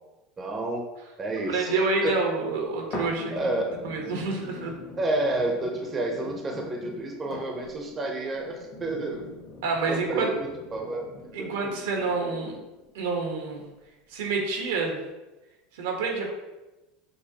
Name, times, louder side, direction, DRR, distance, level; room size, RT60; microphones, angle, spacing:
voice 1, 0.4-0.8 1.2-2.1 3.3-3.6 5.0-9.3 9.9-11.1 11.4-11.5, right 2 dB, 25° right, 1 dB, 0.7 m, -30 dB
voice 2, 1.5-3.3 3.8-4.7 9.6-10.3 11.3-12.5 12.9-13.6 14.1-15.0 15.7-16.3, right 3 dB, 85° right, 1 dB, 1.0 m, -28 dB
sound 1, 2.9-12.9 13.5-13.6, left 2 dB, 45° left, 1.4 m, -43 dB
6.2 x 2.6 x 2.8 m, 1.1 s
supercardioid pair, 125°, 0 cm